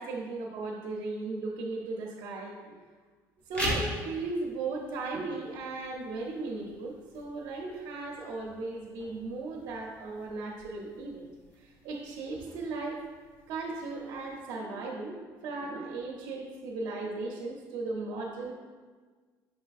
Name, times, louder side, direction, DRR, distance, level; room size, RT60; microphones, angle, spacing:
voice 1, 0.0-2.8 3.5-11.2 11.6-13.0 13.5-15.2 15.4-18.5, right 3 dB, 75° right, -2 dB, 0.6 m, -36 dB
sound 1, 3.4-14.4, equal, 20° left, 1.0 m, -42 dB
6.0 x 3.3 x 2.4 m, 1.5 s
cardioid pair, 155°, 7 cm